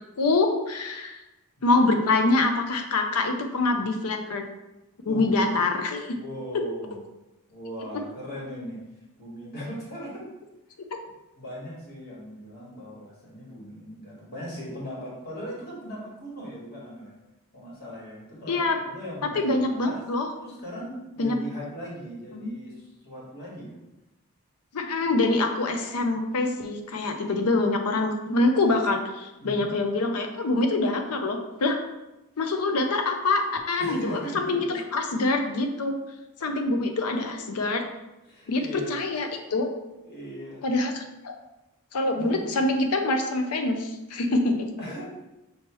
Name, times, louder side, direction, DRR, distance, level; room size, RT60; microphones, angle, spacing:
voice 1, 0.2-1.2 1.6-4.4 5.0-6.1 6.5-6.6 18.5-18.8 19.4-20.3 21.2-21.4 22.3-22.5 24.7-31.8 32.4-35.9 36.4-37.8 38.5-38.6 38.9-39.7 40.6-41.3 41.9-44.7, left 2 dB, 85° left, 5 dB, 0.6 m, -25 dB
voice 2, 1.6-2.1 5.0-5.3 6.1-7.0 7.5-8.8 9.2-10.3 11.4-17.1 17.5-20.0 20.4-23.7 29.4-29.6 33.8-34.6 36.4-36.5 38.2-39.0 39.5-39.6 40.0-40.6 42.2-42.5 44.8-45.0, equal, 45° left, -5 dB, 1.6 m, -39 dB
5.7 x 3.0 x 3.0 m, 0.98 s
head